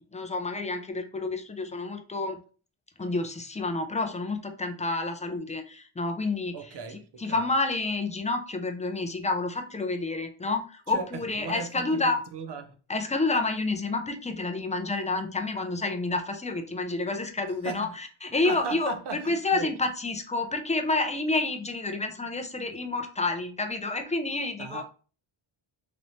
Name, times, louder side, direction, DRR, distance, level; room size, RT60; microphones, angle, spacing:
voice 1, 0.1-2.4 3.0-12.2 12.9-24.8, left 3 dB, 15° left, 0.4 m, -29 dB
voice 2, 6.5-7.4 10.9-11.1 11.4-12.7 17.6-18.0 18.4-19.7 24.6-24.8, right 5 dB, 55° right, 0.7 m, -37 dB
3.2 x 3.0 x 2.6 m
cardioid pair, 90°, 49 cm